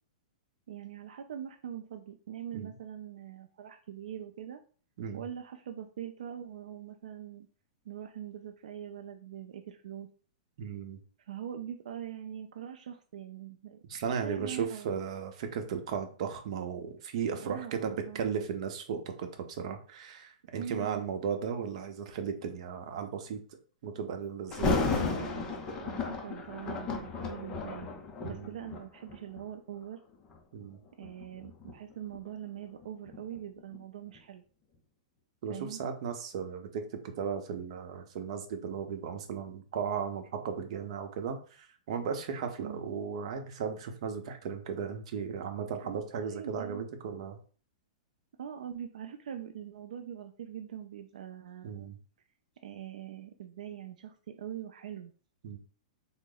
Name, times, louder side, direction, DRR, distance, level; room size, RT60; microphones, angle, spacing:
voice 1, 0.7-4.6 5.1-7.5 7.9-10.1 11.2-13.8 14.2-14.9 17.4-18.2 20.5-21.1 24.6-27.9 28.2-30.0 31.0-34.4 35.5-35.8 42.6-42.8 45.8-46.0 46.3-46.9 48.4-51.9 52.6-55.1, right 9 dB, 80° right, 5 dB, 0.4 m, -42 dB
voice 2, 10.6-11.0 13.8-23.4 23.8-24.9 28.2-28.5 30.5-30.8 35.4-47.4 51.6-52.0 55.4-55.6, right 6 dB, 50° right, 5 dB, 0.7 m, -36 dB
Thunder, 24.5-29.5 30.1-30.4 31.0-33.8 34.2-34.3, left 4 dB, 20° left, 0.5 m, -34 dB
3.7 x 2.0 x 3.8 m, 0.41 s
hypercardioid pair, 160°, 4 cm